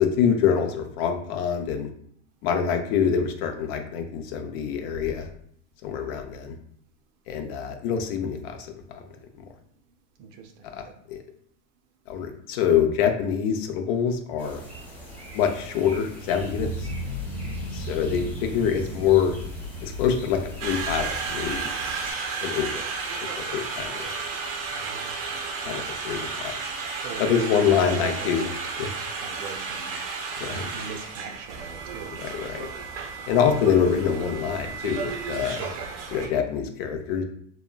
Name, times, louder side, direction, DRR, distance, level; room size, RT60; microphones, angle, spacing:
voice 1, 0.0-1.9 2.4-5.3 5.8-6.6 7.3-8.6 8.9-9.0 10.7-10.8 11.1-11.2 12.1-14.6 15.3-16.9 17.7-19.4 19.8-21.7 22.4-24.1 25.7-26.5 27.2-28.5 28.8-28.9 30.4-30.7 32.2-32.7 33.3-35.7 36.1-37.2, left 7 dB, 55° left, 6 dB, 0.4 m, -25 dB
voice 2, 10.2-10.9 24.7-25.5 27.0-28.5 29.1-30.0 30.4-32.6, right 6 dB, 50° right, 5 dB, 0.4 m, -41 dB
sound 1, 14.4-22.1, equal, 5° left, 0.7 m, -43 dB
sound 2, 16.4-21.6, equal, 30° left, 0.9 m, -35 dB
Conversation, 20.6-36.3, right 4 dB, 90° right, 0.7 m, -33 dB
2.8 x 2.2 x 2.2 m, 0.65 s
supercardioid pair, 120°, 36 cm